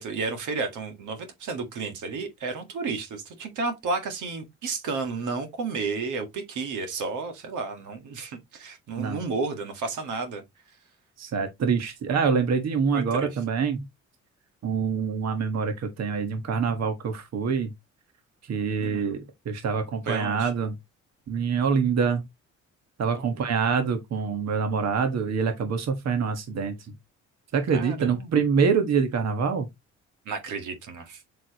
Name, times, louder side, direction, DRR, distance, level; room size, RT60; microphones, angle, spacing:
voice 1, 0.0-10.4 12.9-13.3 18.8-19.1 20.0-20.5 23.1-23.4 27.7-28.3 30.2-31.2, right 4 dB, 80° right, 1.9 m, -32 dB
voice 2, 11.2-13.8 14.6-17.7 18.5-20.7 21.3-22.2 23.0-26.7 27.5-29.7, right 6 dB, 60° right, 1.6 m, -25 dB
7.5 x 4.7 x 3.0 m
cardioid pair, 90°, 30 cm